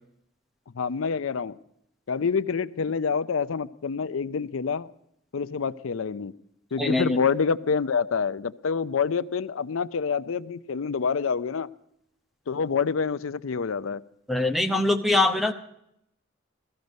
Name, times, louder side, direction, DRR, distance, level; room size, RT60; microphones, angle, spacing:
voice 1, 0.7-1.6 2.1-4.9 5.3-6.3 6.7-11.7 12.5-14.0, left 5 dB, 70° left, 15 dB, 0.5 m, -27 dB
voice 2, 6.8-7.2 14.3-15.5, left 2 dB, ahead, 7 dB, 0.7 m, -23 dB
16.5 x 14.0 x 5.2 m, 0.77 s
head